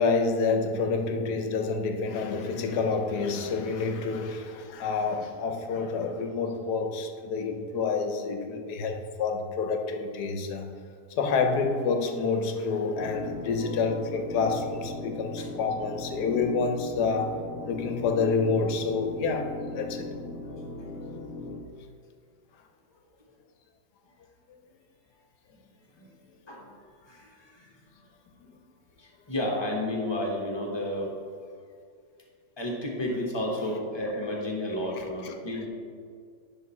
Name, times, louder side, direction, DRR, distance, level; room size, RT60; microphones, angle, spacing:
voice 1, 0.0-10.7 11.1-17.4 17.6-20.1, left 4 dB, 75° left, 5 dB, 1.2 m, -28 dB
sound 1, 13.0-21.6, left 2 dB, 50° left, 0.7 m, -38 dB
voice 2, 20.3-20.7 23.3-23.4 25.5-25.6 26.0-28.1 29.0-31.2 32.6-35.7, left 1 dB, 20° left, -1 dB, 0.9 m, -33 dB
10.5 x 3.6 x 4.3 m, 2.1 s
omnidirectional pair, 1.8 m